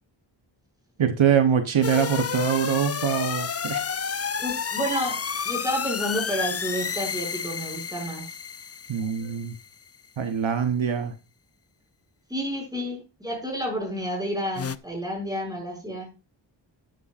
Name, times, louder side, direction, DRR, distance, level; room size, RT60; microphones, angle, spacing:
voice 1, 1.0-3.8 8.9-9.5 10.2-11.1, right 8 dB, 80° right, 1.1 m, -23 dB
sound 1, 1.8-9.7 14.6-14.8, left 6 dB, 35° left, 0.5 m, -30 dB
voice 2, 4.4-5.2 5.4-8.4 12.3-16.1, equal, 10° right, 6.4 m, -30 dB
11.5 x 11.0 x 2.5 m
wide cardioid pair, 105°, 46 cm